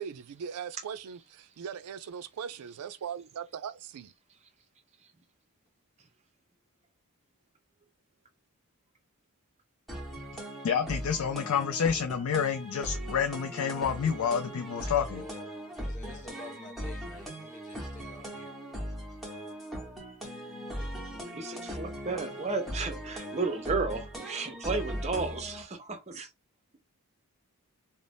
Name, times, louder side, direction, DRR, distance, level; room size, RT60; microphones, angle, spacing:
voice 1, 0.0-4.1, right 7 dB, 85° right, 0.4 m, -39 dB
sound 1, 9.9-25.6, equal, ahead, 0.9 m, -39 dB
voice 2, 10.6-15.2, left 7 dB, 75° left, 0.4 m, -29 dB
voice 3, 15.8-18.5, left 3 dB, 35° left, 0.7 m, -48 dB
voice 4, 21.1-26.3, right 4 dB, 30° right, 0.6 m, -33 dB
2.6 x 2.0 x 3.2 m
head